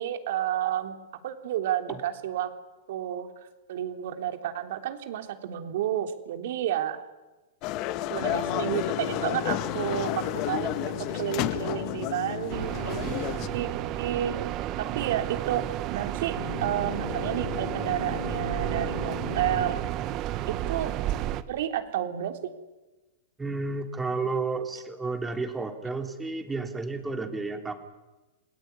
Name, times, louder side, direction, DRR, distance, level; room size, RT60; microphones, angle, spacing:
voice 1, 0.0-2.5 2.9-3.3 3.7-7.0 8.1-13.7 14.0-14.3 14.8-16.4 16.6-19.8 20.5-20.9 21.5-22.5, right 11 dB, 65° right, 6 dB, 3.4 m, -31 dB
sound 1, 7.6-13.5, left 14 dB, 40° left, 1.5 m, -31 dB
sound 2, 8.2-14.5 16.4-19.7, left 6 dB, 75° left, 3.3 m, -37 dB
sound 3, 12.5-21.4, right 13 dB, 35° right, 1.5 m, -32 dB
voice 2, 23.4-27.7, right 3 dB, 10° right, 5 dB, 3.3 m, -31 dB
28.5 x 19.5 x 9.8 m, 1.2 s
hypercardioid pair, 135°, 0 cm